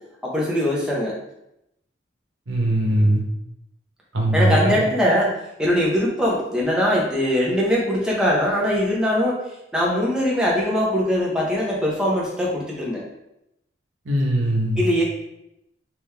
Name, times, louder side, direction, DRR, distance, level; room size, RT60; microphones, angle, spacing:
voice 1, 0.2-1.1 4.3-5.3 5.6-9.4 9.7-13.0 14.8-15.0, equal, 5° right, -5 dB, 0.7 m, -21 dB
voice 2, 2.5-3.2 4.1-4.8 14.0-14.8, right 1 dB, 85° right, 0 dB, 1.0 m, -20 dB
3.7 x 3.1 x 3.3 m, 0.83 s
head